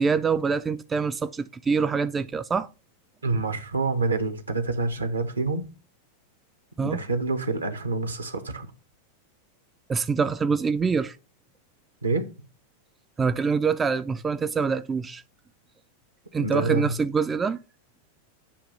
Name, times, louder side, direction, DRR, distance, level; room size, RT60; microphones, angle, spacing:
voice 1, 0.0-2.7 6.8-7.0 9.9-11.2 13.2-15.2 16.3-17.6, right 5 dB, 15° right, 0.4 m, -25 dB
voice 2, 3.2-5.7 6.8-8.7 12.0-12.3 16.4-16.9, right 3 dB, 80° right, 1.0 m, -27 dB
8.5 x 2.9 x 5.4 m
figure-of-eight pair, 90°, 0 cm